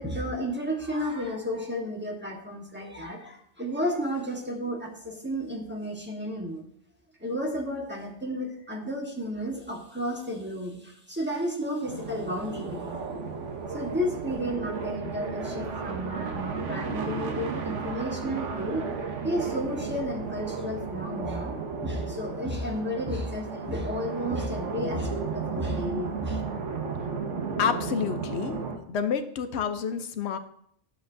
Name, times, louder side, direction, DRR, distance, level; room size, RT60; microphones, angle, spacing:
voice 1, 0.0-6.6 7.2-13.0 13.7-26.4, equal, 10° right, -2 dB, 1.2 m, -32 dB
sound 1, 11.8-28.8, right 5 dB, 85° right, 1.3 m, -34 dB
voice 2, 27.6-28.6 28.9-30.4, left 7 dB, 70° left, 9 dB, 0.9 m, -28 dB
10.5 x 6.7 x 2.6 m, 0.68 s
omnidirectional pair, 1.2 m